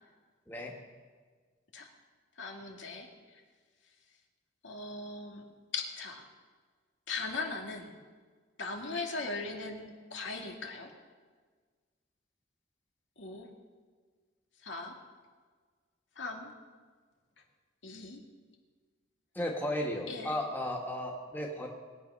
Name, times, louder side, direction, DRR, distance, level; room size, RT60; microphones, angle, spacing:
voice 1, 2.4-3.1 4.6-5.4 5.7-6.2 7.1-8.0 8.6-10.9 13.2-13.5 14.6-15.0 16.2-16.5 17.8-18.2 20.1-20.4, left 3 dB, 85° left, 1 dB, 2.2 m, -39 dB
voice 2, 19.3-21.7, left 1 dB, 10° left, -1 dB, 1.8 m, -34 dB
21.5 x 8.8 x 5.6 m, 1.5 s
head